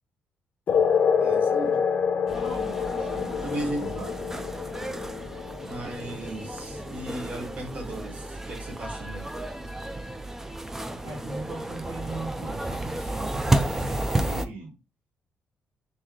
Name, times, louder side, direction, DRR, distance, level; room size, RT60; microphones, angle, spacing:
sound 1, 0.7-7.7, left 6 dB, 50° left, 0.5 m, -27 dB
voice 1, 1.2-1.8 3.4-3.9 5.6-9.3, right 1 dB, 40° right, 2 dB, 1.0 m, -36 dB
sound 2, 2.3-14.5, right 1 dB, 10° right, 0.4 m, -32 dB
voice 2, 2.4-3.5 3.7-4.1 10.9-14.7, right 2 dB, 75° right, 1 dB, 1.4 m, -40 dB
3.1 x 2.7 x 3.6 m, 0.27 s
cardioid pair, 150°, 4 cm